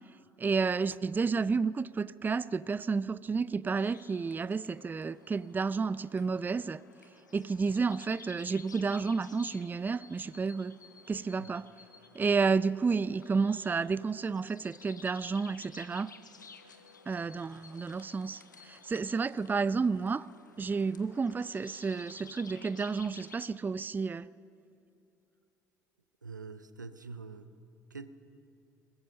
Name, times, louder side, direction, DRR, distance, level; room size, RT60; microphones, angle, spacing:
voice 1, 0.4-6.8 7.3-10.8 11.1-11.7 12.1-16.1 17.1-20.3 20.6-24.3, right 5 dB, 20° right, 0.4 m, -31 dB
sound 1, 3.8-23.5, left 5 dB, 85° left, 0.9 m, -54 dB
voice 2, 26.2-27.5 27.9-28.1, right 4 dB, 85° right, 0.6 m, -44 dB
22.0 x 20.0 x 6.5 m
figure-of-eight pair, 55°, 10 cm